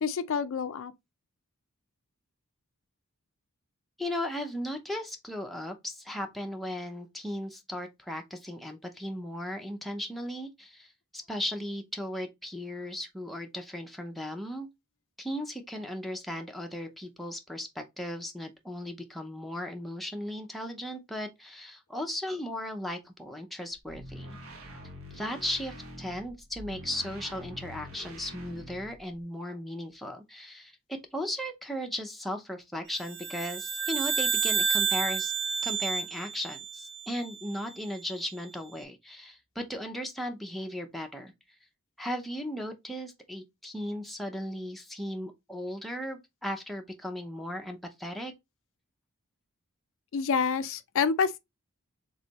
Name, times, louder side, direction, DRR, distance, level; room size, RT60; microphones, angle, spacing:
voice 1, 0.0-0.9 50.1-51.4, left 5 dB, 60° left, 0.4 m, -28 dB
voice 2, 4.0-14.7 15.2-24.4 25.1-35.3 35.6-41.3 42.0-48.3, left 1 dB, ahead, 0.6 m, -36 dB
sound 1, 23.7-29.2, equal, 70° right, 1.2 m, -45 dB
sound 2, 33.0-37.6, right 5 dB, 50° right, 0.8 m, -30 dB
3.7 x 3.2 x 4.0 m
head